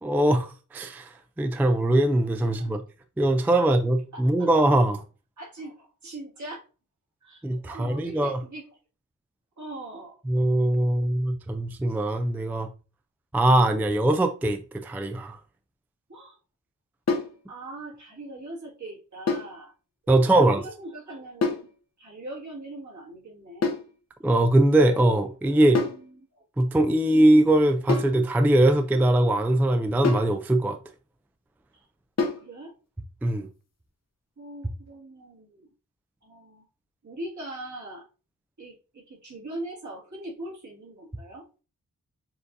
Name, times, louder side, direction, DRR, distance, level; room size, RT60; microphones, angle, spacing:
voice 1, 0.0-2.8 3.2-5.0 7.4-8.4 10.3-12.7 13.3-15.4 20.1-20.6 24.2-25.8 26.6-30.8 33.2-33.5, right 1 dB, 5° right, 0.3 m, -21 dB
voice 2, 2.4-2.7 3.6-3.7 4.1-4.5 5.4-6.6 7.2-8.8 9.6-10.2 16.1-16.4 17.5-19.7 20.1-21.7 22.0-23.7 24.9-26.2 31.7-31.9 32.2-32.7 34.4-35.7 36.2-36.6 37.0-38.1 38.6-41.5, right 1 dB, 60° right, 1.9 m, -41 dB
sound 1, 17.1-17.4 19.3-19.6 21.4-21.7 23.6-23.9 25.7-26.0 27.9-28.2 30.0-30.4 32.2-32.5, left 4 dB, 50° left, 0.8 m, -26 dB
6.9 x 2.6 x 2.6 m
wide cardioid pair, 90°, 33 cm